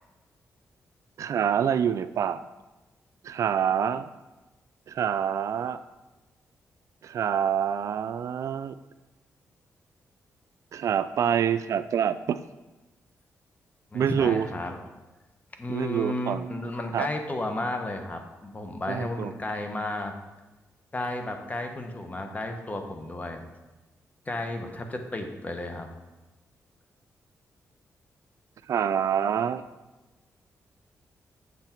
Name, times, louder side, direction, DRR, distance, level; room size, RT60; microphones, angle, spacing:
voice 1, 1.2-2.4 3.2-4.1 4.9-5.8 7.0-8.8 10.7-12.4 13.9-14.5 15.7-16.5 16.9-17.1 18.9-19.3 28.7-29.6, right 8 dB, 65° right, 13 dB, 0.3 m, -26 dB
voice 2, 13.9-14.7 15.6-20.1 20.9-23.4 24.3-25.9, left 1 dB, 25° left, 5 dB, 1.0 m, -33 dB
7.6 x 6.0 x 4.4 m, 1.1 s
cardioid pair, 95°, 6 cm